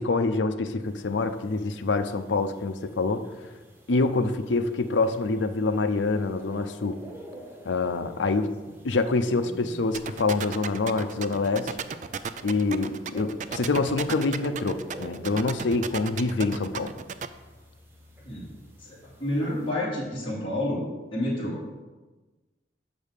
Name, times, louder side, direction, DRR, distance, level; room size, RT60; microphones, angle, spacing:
voice 1, 0.0-3.3 3.9-7.0 7.6-8.6 8.8-11.8 12.4-16.9, left 3 dB, 85° left, 9 dB, 0.6 m, -26 dB
sound 1, 0.8-19.7, equal, 10° right, 0.9 m, -49 dB
voice 2, 9.3-9.7 18.2-18.5 18.8-20.8 21.1-21.6, left 1 dB, 30° left, -6 dB, 2.5 m, -30 dB
sound 2, 9.9-17.3, right 6 dB, 40° right, 0.3 m, -33 dB
6.4 x 5.3 x 6.6 m, 1.2 s
head